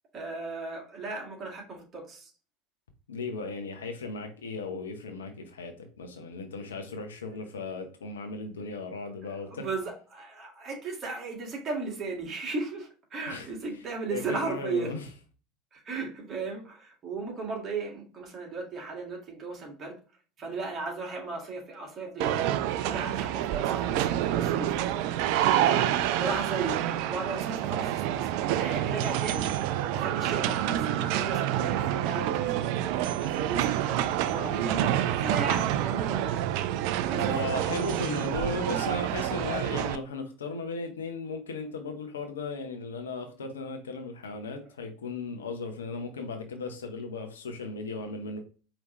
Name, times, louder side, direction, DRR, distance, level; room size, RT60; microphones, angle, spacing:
voice 1, 0.1-2.3 9.2-15.0 15.7-20.0 20.4-22.5 22.9-24.8 25.0-32.8 33.2-36.4 37.0-37.2, right 3 dB, 35° right, 1.9 m, -36 dB
voice 2, 3.1-9.7 13.3-13.5 14.1-15.1 37.3-48.4, left 3 dB, 75° left, 0.8 m, -36 dB
sound 1, 22.2-40.0, right 11 dB, 55° right, 0.3 m, -28 dB
4.9 x 3.1 x 3.1 m
figure-of-eight pair, 75°, 0 cm